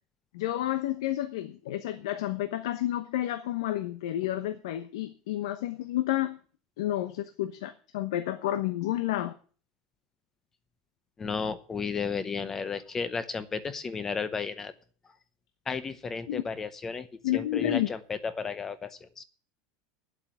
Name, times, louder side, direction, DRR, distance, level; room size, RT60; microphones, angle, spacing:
voice 1, 0.3-6.4 6.8-9.3 16.3-16.4 17.2-17.9, left 13 dB, 90° left, 1.0 m, -30 dB
voice 2, 11.2-14.7 15.7-17.1 17.3-19.2, left 5 dB, 15° left, 0.7 m, -33 dB
9.6 x 8.0 x 9.0 m
supercardioid pair, 170°, 3 cm